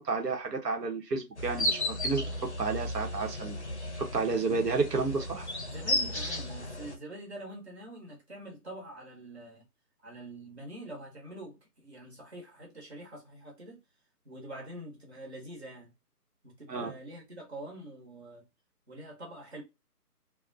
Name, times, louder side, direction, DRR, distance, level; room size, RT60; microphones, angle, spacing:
voice 1, 0.0-2.2 2.6-3.6 4.0-5.5 16.7-16.9, right 4 dB, 85° right, 1.0 m, -31 dB
sound 1, 1.4-7.0, left 1 dB, 50° left, 0.5 m, -34 dB
voice 2, 5.6-9.7 10.0-13.8 14.2-15.9 16.4-18.5 18.9-19.6, right 1 dB, 45° right, 1.2 m, -45 dB
2.4 x 2.2 x 2.4 m
hypercardioid pair, 175°, 47 cm